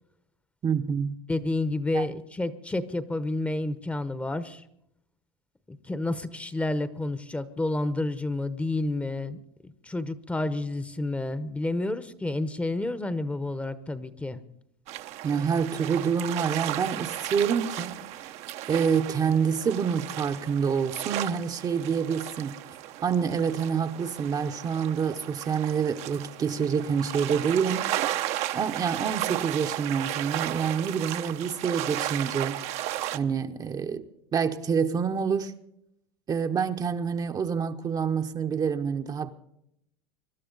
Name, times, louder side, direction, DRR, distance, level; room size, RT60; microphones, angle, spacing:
voice 1, 0.6-1.2 1.9-2.1 15.2-18.2 18.7-22.5 23.0-27.9 28.5-32.6 33.1-34.1 34.3-35.5 36.3-39.3, right 6 dB, 30° right, 0.8 m, -27 dB
voice 2, 1.3-4.6 5.7-9.4 9.8-14.4, left 2 dB, 10° left, 0.8 m, -30 dB
sound 1, 14.9-33.2, right 13 dB, 55° right, 0.8 m, -34 dB
23.5 x 12.0 x 3.9 m
supercardioid pair, 105°, 13 cm